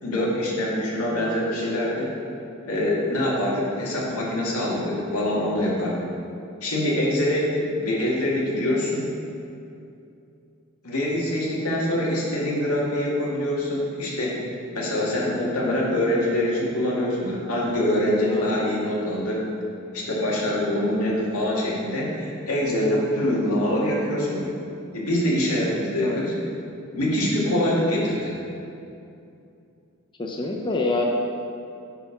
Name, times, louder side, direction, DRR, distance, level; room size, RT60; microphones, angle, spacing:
voice 1, 0.0-2.1 2.6-6.0 6.6-9.1 10.8-14.4 14.7-19.4 19.9-24.5 24.9-26.4 26.9-28.4, left 1 dB, 85° left, -4 dB, 2.1 m, -24 dB
voice 2, 30.2-31.0, left 3 dB, 20° left, 0 dB, 0.5 m, -26 dB
9.1 x 4.6 x 5.9 m, 2.6 s
head